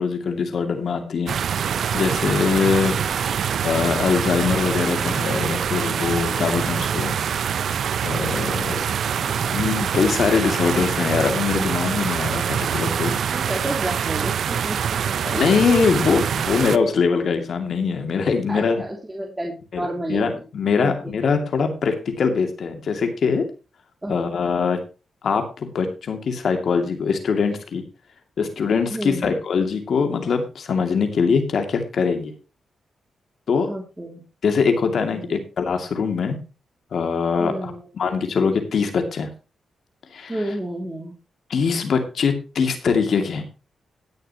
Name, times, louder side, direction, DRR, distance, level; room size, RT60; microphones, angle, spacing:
voice 1, 0.0-1.4 1.9-3.0 3.6-7.2 8.0-8.8 9.1-13.2 15.2-18.8 19.7-23.4 24.1-24.8 25.2-27.8 28.4-32.3 33.5-33.7 34.4-36.4 36.9-39.3 40.1-40.3 41.5-43.4, left 5 dB, 65° left, 6 dB, 2.4 m, -22 dB
sound 1, 1.3-16.8, right 8 dB, 70° right, 0.5 m, -24 dB
voice 2, 13.3-15.4 18.5-20.4 20.8-21.1 24.0-24.2 28.9-29.3 33.7-34.2 35.1-35.4 37.4-37.9 40.3-41.1, right 1 dB, 15° right, 0 dB, 2.7 m, -31 dB
18.5 x 6.7 x 3.0 m, 0.32 s
cardioid pair, 70°, 0 cm